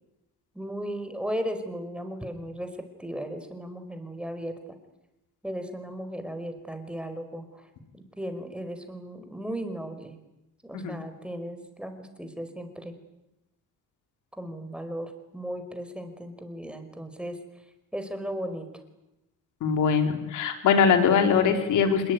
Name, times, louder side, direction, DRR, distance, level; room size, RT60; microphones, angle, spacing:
voice 1, 0.5-4.6 5.4-7.7 7.9-10.2 10.6-12.9 14.4-17.4 17.9-18.7, equal, 5° right, 8 dB, 5.1 m, -36 dB
voice 2, 19.6-22.1, left 6 dB, 80° left, 6 dB, 4.2 m, -22 dB
26.5 x 21.5 x 9.7 m, 0.93 s
cardioid pair, 90°, 30 cm